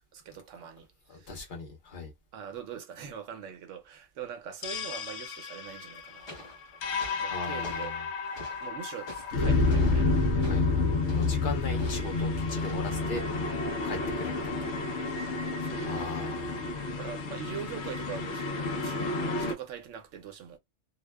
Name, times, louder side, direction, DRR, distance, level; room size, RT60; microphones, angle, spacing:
voice 1, 0.1-1.5 2.3-6.5 7.2-8.0 8.6-10.2 11.7-11.8 14.0-14.1 15.6-16.1 16.4-16.6 16.9-20.6, right 8 dB, 85° right, 1.0 m, -43 dB
voice 2, 1.1-2.1 7.3-8.0 10.4-13.2 13.8-15.0 15.8-16.7, left 4 dB, 45° left, 1.0 m, -39 dB
sound 1, 4.6-19.5, left 3 dB, 70° left, 0.9 m, -30 dB
sound 2, 6.0-12.9, left 1 dB, 25° left, 0.8 m, -49 dB
2.7 x 2.1 x 2.2 m
omnidirectional pair, 1.3 m